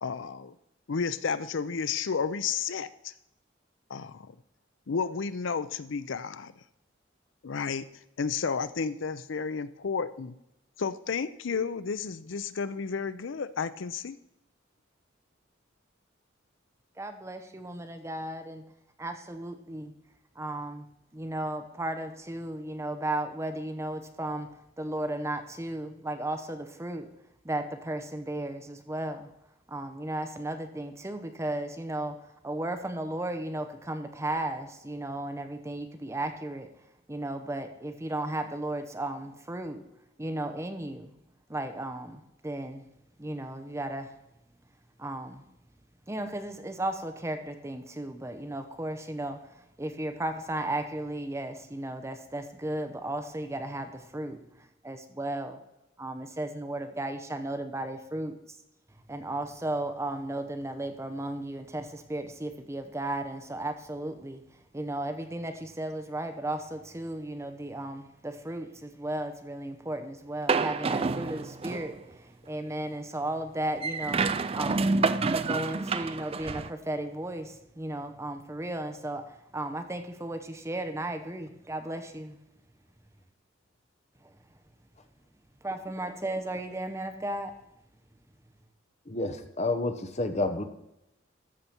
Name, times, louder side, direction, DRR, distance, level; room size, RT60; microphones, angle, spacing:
voice 1, 0.0-0.5 0.9-3.1 3.9-4.3 4.9-6.5 7.4-7.9 8.2-10.4 10.8-14.2, left 5 dB, 70° left, 0.5 m, -32 dB
voice 2, 17.0-18.6 19.0-19.9 20.4-27.1 27.4-29.3 29.7-36.7 37.1-39.9 40.2-41.1 41.5-42.9 43.2-44.2 45.0-45.4 46.1-55.6 56.0-58.6 59.1-64.4 64.7-74.9 75.3-82.4 84.2-84.3 85.6-87.6, right 1 dB, 15° right, 0.7 m, -35 dB
sound 1, 70.5-72.0 73.8-76.7, right 4 dB, 30° right, 0.4 m, -28 dB
voice 3, 89.1-90.6, left 2 dB, 35° left, 0.9 m, -29 dB
13.5 x 6.8 x 4.4 m
head